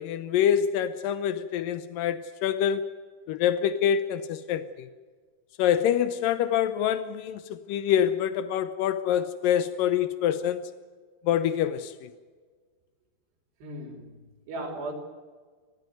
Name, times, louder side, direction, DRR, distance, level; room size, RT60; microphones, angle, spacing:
voice 1, 0.0-2.9 3.3-4.9 5.6-10.7 11.2-12.1, left 9 dB, 85° left, 1.9 m, -26 dB
voice 2, 13.6-14.9, right 1 dB, 70° right, 5.2 m, -37 dB
29.5 x 15.0 x 9.3 m
omnidirectional pair, 5.1 m